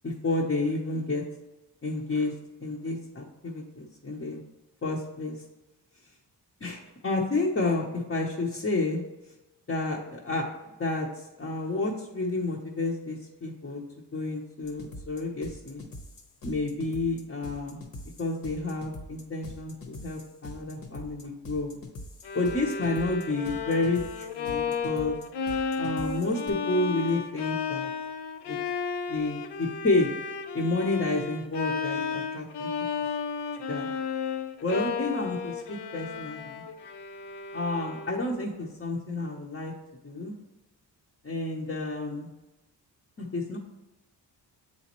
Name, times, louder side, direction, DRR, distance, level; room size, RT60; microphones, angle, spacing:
voice 1, 0.0-1.2 1.8-2.3 2.6-4.4 4.8-5.3 6.6-9.0 9.7-10.5 10.8-13.8 14.1-15.8 16.4-17.8 18.2-21.8 22.3-25.2 25.8-27.9 28.5-28.6 29.1-30.1 30.5-32.7 33.7-33.9 34.6-36.6 37.5-39.7 40.0-40.4 41.2-42.3 43.2-43.6, left 2 dB, 30° left, -4 dB, 0.8 m, -30 dB
sound 1, 14.6-26.5, left 1 dB, 50° left, 1.0 m, -44 dB
Bowed string instrument, 22.2-38.3, left 6 dB, 70° left, 0.6 m, -33 dB
7.7 x 4.1 x 3.0 m, 1.0 s
cardioid pair, 95°, 43 cm